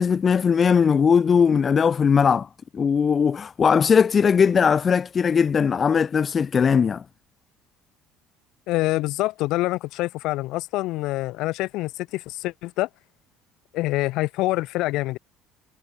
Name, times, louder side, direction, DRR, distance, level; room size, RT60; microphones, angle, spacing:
voice 1, 0.0-7.0, left 6 dB, 35° left, 0.7 m, -19 dB
voice 2, 8.7-12.9 13.7-15.2, left 19 dB, 60° left, 4.9 m, -26 dB
figure-of-eight pair, 60°, 0 cm